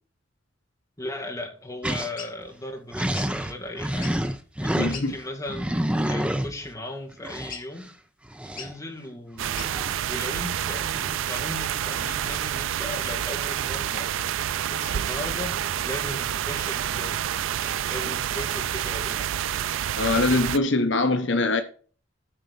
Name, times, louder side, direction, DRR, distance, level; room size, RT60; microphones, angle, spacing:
voice 1, 1.0-4.1 4.6-5.7 6.1-7.9 8.5-9.7 10.1-10.9 11.2-14.1 14.6-17.2 17.6-19.3, left 1 dB, 20° left, 1.9 m, -37 dB
sound 1, 1.8-2.1 2.5-2.6 2.9-5.2 5.5-6.7 7.2-7.6 8.3-8.8 9.5-10.0 10.5-11.2 11.9-12.5 13.4-14.3 15.0-16.1, equal, 5° right, 0.7 m, -30 dB
sound 2, 2.2-2.3 3.1-3.3 3.9-4.3 4.9-5.1 5.6-5.9 7.5-7.9 8.6-8.7 9.6-9.7, left 6 dB, 45° left, 2.2 m, -40 dB
voice 2, 4.7-5.1 20.0-21.6, left 2 dB, 70° left, 1.0 m, -23 dB
sound 3, 9.4-20.6, right 10 dB, 90° right, 0.4 m, -28 dB
9.1 x 4.5 x 6.7 m
head